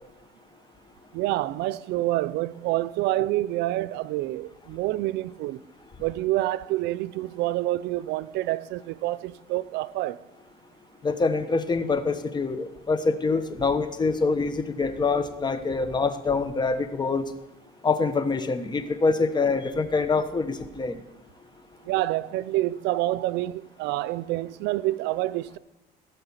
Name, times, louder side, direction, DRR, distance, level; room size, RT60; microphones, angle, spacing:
voice 1, 1.1-5.6 6.0-10.2 21.9-25.6, right 16 dB, 90° right, 0.5 m, -27 dB
voice 2, 11.0-17.3 17.8-21.0, left 4 dB, 25° left, 1.1 m, -25 dB
17.0 x 5.8 x 7.2 m
cardioid pair, 110°, 17 cm